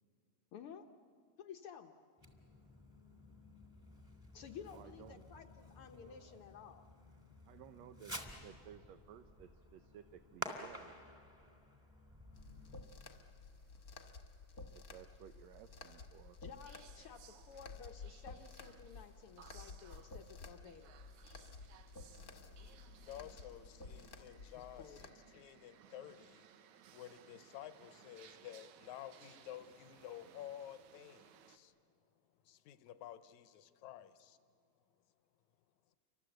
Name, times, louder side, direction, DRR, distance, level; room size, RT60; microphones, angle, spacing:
voice 1, 0.5-0.8 1.4-1.9 4.3-6.8 16.4-20.9 24.7-25.0, left 7 dB, 65° left, 6 dB, 1.4 m, -53 dB
Fireworks, 2.2-12.9, equal, 10° right, 1.9 m, -52 dB
voice 2, 4.7-5.2 7.5-11.0 14.7-16.4, right 9 dB, 75° right, 8 dB, 1.9 m, -57 dB
sound 1, 12.3-25.1, left 4 dB, 40° left, 1.4 m, -53 dB
sound 2, 12.4-31.6, right 9 dB, 90° right, 2.4 m, -64 dB
voice 3, 23.0-26.5 26.9-31.7 32.4-34.4, left 11 dB, 85° left, 12 dB, 2.3 m, -52 dB
30.0 x 25.0 x 7.9 m, 2.2 s
omnidirectional pair, 3.3 m